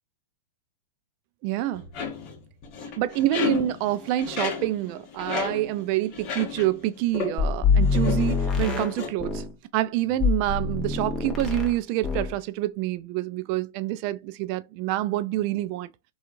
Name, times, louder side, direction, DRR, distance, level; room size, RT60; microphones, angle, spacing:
voice 1, 1.4-1.9 3.0-9.4 9.7-15.9, right 14 dB, 50° right, 0.3 m, -27 dB
sound 1, 1.7-6.9 7.1-7.5 7.8-9.1, left 6 dB, 45° left, 0.9 m, -33 dB
sound 2, 7.4-9.5 10.2-11.8 12.0-12.4, left 5 dB, 20° left, 0.8 m, -25 dB
3.0 x 2.3 x 2.5 m
hypercardioid pair, 125°, 0 cm